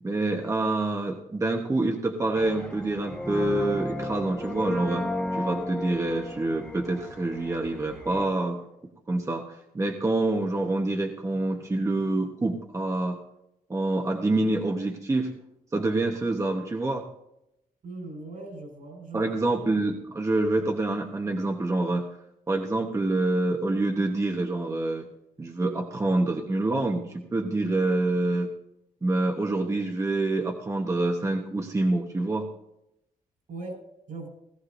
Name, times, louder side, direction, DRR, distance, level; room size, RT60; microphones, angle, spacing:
voice 1, 0.0-5.0 5.3-8.6 9.1-9.5 9.7-13.2 13.7-15.3 15.7-17.1 19.1-22.1 22.5-25.1 25.4-28.5 29.0-32.5, right 2 dB, 20° right, 2 dB, 1.1 m, -26 dB
sound 1, 2.3-8.3, left 1 dB, 10° left, 1.0 m, -34 dB
voice 2, 17.8-19.3 33.5-33.8 34.1-34.3, right 3 dB, 70° right, 2 dB, 5.0 m, -39 dB
18.0 x 14.5 x 2.6 m, 0.84 s
cardioid pair, 125°, 14 cm